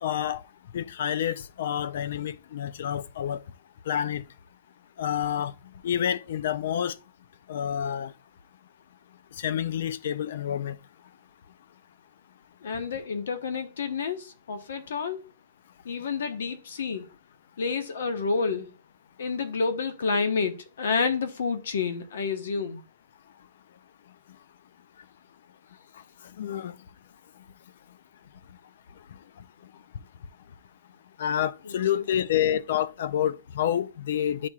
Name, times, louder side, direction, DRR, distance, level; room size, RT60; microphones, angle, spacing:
voice 1, 0.0-0.4 0.7-3.4 3.9-4.2 5.0-5.5 5.8-6.9 7.5-8.1 9.4-10.8 26.4-26.8 31.2-34.5, left 10 dB, 65° left, 0.5 m, -28 dB
voice 2, 12.6-15.3 15.8-17.1 17.6-18.7 19.2-22.8 31.6-31.8, left 5 dB, 85° left, 1.0 m, -29 dB
11.0 x 4.3 x 2.3 m
hypercardioid pair, 165°, 0 cm